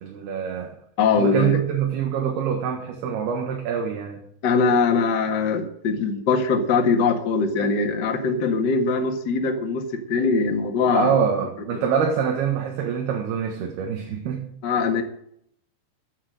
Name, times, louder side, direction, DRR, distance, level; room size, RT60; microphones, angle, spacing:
voice 1, 0.0-0.7 1.2-4.2 10.9-14.4, right 7 dB, 65° right, 3 dB, 3.4 m, -25 dB
voice 2, 1.0-1.6 4.4-9.8 10.1-11.2 14.6-15.0, left 4 dB, 85° left, 4 dB, 0.9 m, -21 dB
15.0 x 8.6 x 7.7 m, 0.70 s
omnidirectional pair, 5.1 m